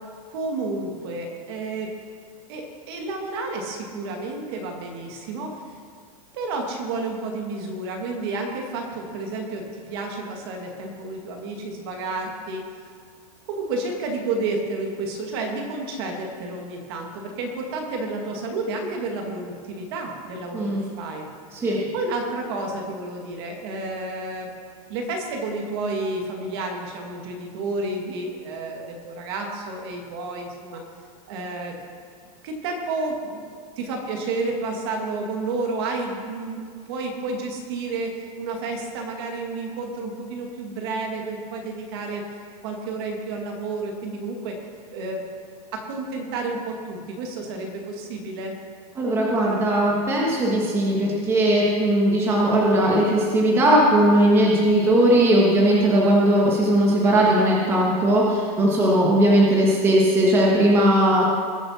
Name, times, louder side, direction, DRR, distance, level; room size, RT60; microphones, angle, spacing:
voice 1, 0.3-1.9 2.5-5.6 6.3-12.6 13.5-21.3 21.7-24.5 24.9-30.8 31.3-31.8 32.4-33.5 33.8-42.2 42.6-44.6 44.9-45.2 45.7-48.5, right 3 dB, 40° right, 2 dB, 1.8 m, -30 dB
voice 2, 48.9-61.2, right 1 dB, 10° right, -4 dB, 1.4 m, -18 dB
20.0 x 7.8 x 4.2 m, 2.1 s
supercardioid pair, 180°, 20 cm